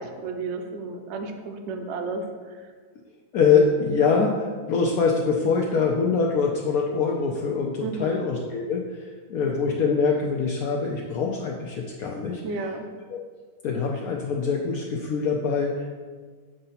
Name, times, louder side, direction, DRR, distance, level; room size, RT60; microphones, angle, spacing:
voice 1, 0.0-2.6 7.8-8.2 12.4-12.8, right 3 dB, 60° right, 5 dB, 0.7 m, -32 dB
voice 2, 3.3-12.4 13.1-13.2 13.6-16.0, left 5 dB, 70° left, -1 dB, 1.0 m, -24 dB
7.5 x 2.7 x 5.6 m, 1.5 s
omnidirectional pair, 1.7 m